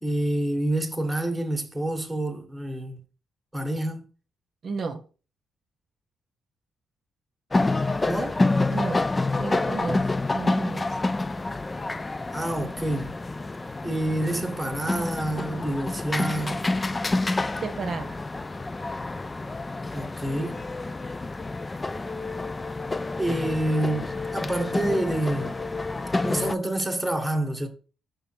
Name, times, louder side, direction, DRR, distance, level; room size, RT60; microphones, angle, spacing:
voice 1, 0.0-3.0 3.5-4.0 8.0-8.4 12.3-13.1 13.8-16.6 19.9-20.6 23.2-25.5 26.2-27.7, right 1 dB, 5° right, 1.3 m, -28 dB
voice 2, 4.6-5.0 8.7-9.0 9.4-10.8 17.6-18.2, right 4 dB, 50° right, 0.8 m, -32 dB
sound 1, 7.5-26.5, left 2 dB, 20° left, 0.3 m, -28 dB
5.5 x 3.9 x 4.4 m
cardioid pair, 90°, 0 cm